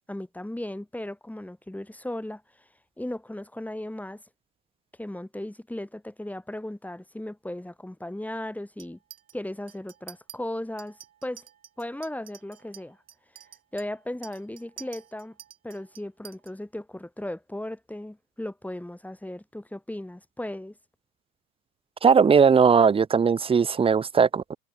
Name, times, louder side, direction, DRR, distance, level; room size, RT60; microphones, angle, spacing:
voice 1, 0.1-2.4 3.0-4.2 5.0-9.0 9.3-11.5 11.8-13.0 13.7-15.4 15.6-20.8, left 1 dB, 5° left, 4.3 m, -36 dB
Chink clink, 8.8-9.3 9.7-10.4 10.8-16.5, right 10 dB, 70° right, 4.9 m, -49 dB
voice 2, 22.0-24.6, right 6 dB, 15° right, 0.7 m, -19 dB
figure-of-eight pair, 75°, 43 cm